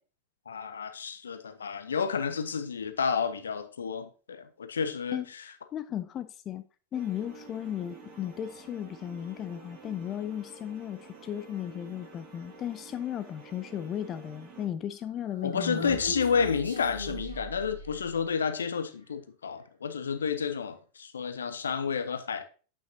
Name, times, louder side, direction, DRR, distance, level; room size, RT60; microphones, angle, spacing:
voice 1, 0.5-5.4 15.4-22.4, left 6 dB, 70° left, 0.6 m, -30 dB
voice 2, 5.7-6.6 6.9-16.0, left 10 dB, 30° left, 0.3 m, -35 dB
sound 1, 6.9-14.7, right 2 dB, 35° right, 1.5 m, -50 dB
Human voice, 15.1-18.2, equal, 85° right, 2.0 m, -40 dB
8.5 x 5.6 x 2.7 m
figure-of-eight pair, 90°, 0 cm